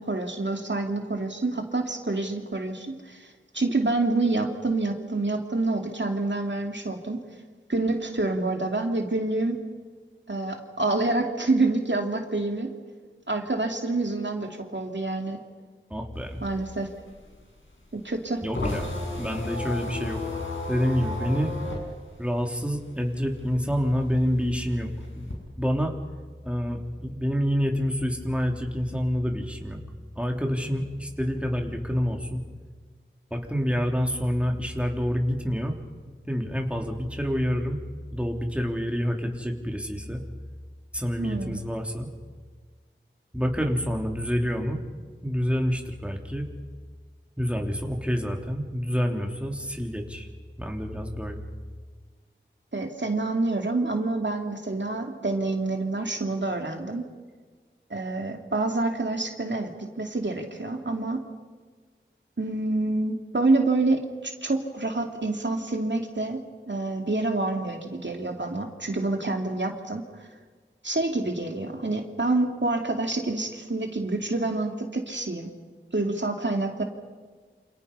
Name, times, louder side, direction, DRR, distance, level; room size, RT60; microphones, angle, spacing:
voice 1, 0.0-7.2 7.7-9.6 10.3-12.7 13.3-15.4 16.4-16.9 17.9-18.4 41.2-41.6 52.7-57.0 57.9-59.7 60.0-61.2 62.4-70.0 70.8-75.5 75.9-76.8, right 2 dB, 65° right, 3 dB, 2.6 m, -27 dB
voice 2, 15.9-16.4 18.4-18.9 19.2-20.2 20.7-21.5 22.2-25.9 26.4-29.8 30.2-32.4 33.3-35.8 36.0-37.8 38.1-40.2 40.9-42.1 43.3-44.8 45.2-46.5 47.4-50.3 50.6-51.4, equal, 5° right, 2 dB, 3.6 m, -27 dB
sound 1, 16.2-23.3 23.6-25.3, left 2 dB, 70° left, 7.0 m, -33 dB
28.5 x 28.0 x 5.6 m, 1.5 s
wide cardioid pair, 40°, 20 cm